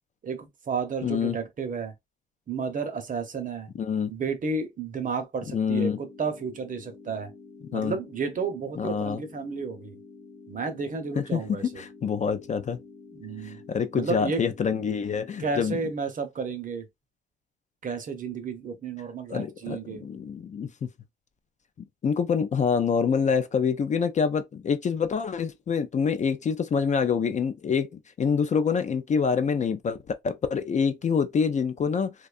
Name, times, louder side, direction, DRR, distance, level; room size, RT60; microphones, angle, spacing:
voice 1, 0.2-1.9 2.5-3.7 4.1-7.3 7.7-10.0 10.5-11.8 13.1-13.6 13.9-14.4 15.4-16.8 17.8-20.0, right 5 dB, 40° right, 0.7 m, -32 dB
voice 2, 1.0-1.4 3.8-4.1 5.5-6.0 7.7-8.0 8.8-9.2 11.2-12.8 13.4-15.8 19.3-20.7 22.0-30.0 30.2-32.1, left 6 dB, 35° left, 0.4 m, -26 dB
sound 1, 5.9-15.9, left 4 dB, 15° left, 0.7 m, -49 dB
2.6 x 2.3 x 2.4 m
cardioid pair, 90°, 20 cm